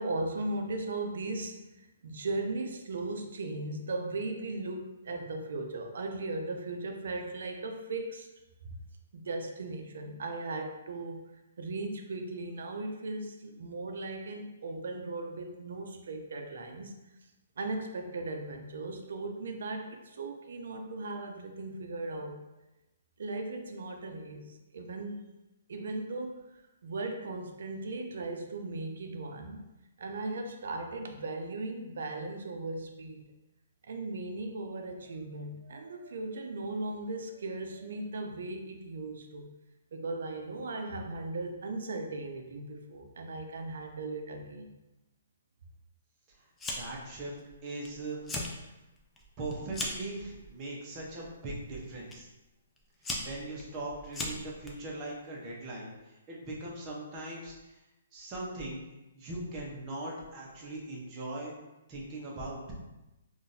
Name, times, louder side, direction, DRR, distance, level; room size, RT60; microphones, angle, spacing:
voice 1, 0.0-8.3 8.6-8.7 9.1-11.2 11.6-16.9 17.6-22.4 23.2-25.2 25.7-26.4 26.8-29.6 30.0-33.2 33.9-39.5 39.9-44.7, right 2 dB, 70° right, 4 dB, 0.4 m, -37 dB
Fire, 46.6-47.1 47.4-47.9 48.2-48.5 49.0-50.1 50.9-51.2 52.1-52.2 52.8-54.7, left 2 dB, 10° left, 0.4 m, -37 dB
voice 2, 46.8-47.3 47.6-48.2 49.4-52.3 53.2-57.8 58.1-58.8 59.1-61.6 61.9-62.6, right 2 dB, 25° right, -4 dB, 0.8 m, -40 dB
3.7 x 2.4 x 2.6 m, 0.99 s
hypercardioid pair, 155°, 0 cm